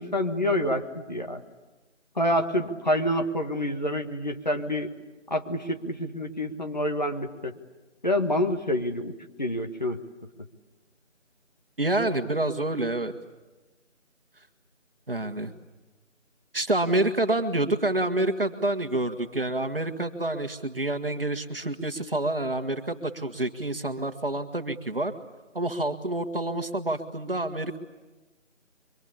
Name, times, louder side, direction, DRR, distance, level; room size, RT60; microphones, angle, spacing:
voice 1, 0.0-1.4 2.1-4.9 5.3-7.5 8.0-10.0, left 1 dB, 35° left, 4 dB, 1.5 m, -27 dB
voice 2, 11.8-13.1 15.1-15.5 16.5-25.1 25.5-27.8, right 2 dB, 50° right, 8 dB, 1.8 m, -28 dB
26.5 x 24.0 x 8.6 m, 1.2 s
figure-of-eight pair, 170°, 37 cm